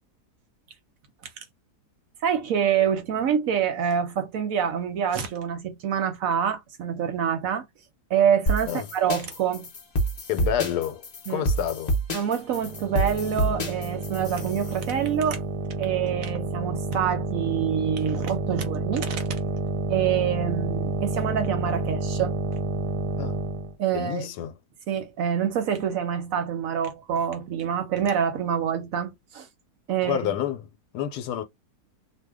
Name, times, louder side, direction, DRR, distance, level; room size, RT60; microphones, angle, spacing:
voice 1, 2.2-7.7 8.1-9.7 11.3-11.5 12.1-15.4 15.8-19.3 19.9-22.4 23.8-24.3 24.9-29.5 29.9-30.4, right 8 dB, 65° right, 1.0 m, -26 dB
sound 1, 8.5-14.8, right 1 dB, 40° left, 0.6 m, -28 dB
voice 2, 10.3-11.9 23.2-23.4 23.9-24.5 30.0-30.7 30.9-31.4, left 10 dB, 80° left, 1.1 m, -29 dB
sound 2, 12.6-23.8, right 3 dB, 85° right, 1.3 m, -30 dB
2.7 x 2.2 x 3.4 m
omnidirectional pair, 1.7 m